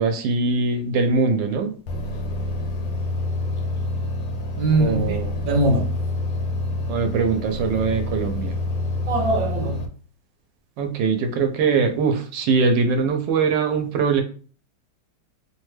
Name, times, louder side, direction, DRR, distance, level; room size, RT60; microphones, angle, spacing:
voice 1, 0.0-1.8 4.8-5.3 6.9-8.6 10.8-14.2, right 4 dB, 85° right, 1.3 m, -22 dB
sound 1, 1.9-9.9, left 2 dB, 70° left, 0.9 m, -27 dB
voice 2, 4.6-5.9 9.1-9.8, right 2 dB, 65° right, 0.9 m, -22 dB
3.2 x 2.2 x 3.1 m
omnidirectional pair, 2.0 m